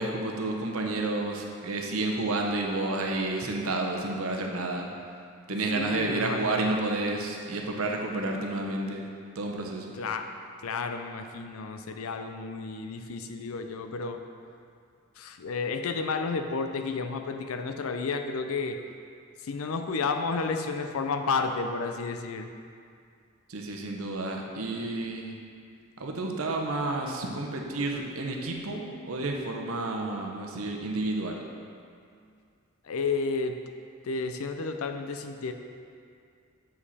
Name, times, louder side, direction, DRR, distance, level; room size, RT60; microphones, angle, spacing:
voice 1, 0.0-4.9 5.5-9.1 9.3-10.0 23.5-25.3 26.0-31.4, right 2 dB, 80° right, 1 dB, 0.8 m, -30 dB
voice 2, 5.5-6.8 10.0-10.3 10.6-14.2 15.2-18.8 19.4-22.5 32.8-33.6 34.0-35.5, left 4 dB, 80° left, 6 dB, 0.5 m, -31 dB
7.3 x 5.0 x 4.2 m, 2.3 s
head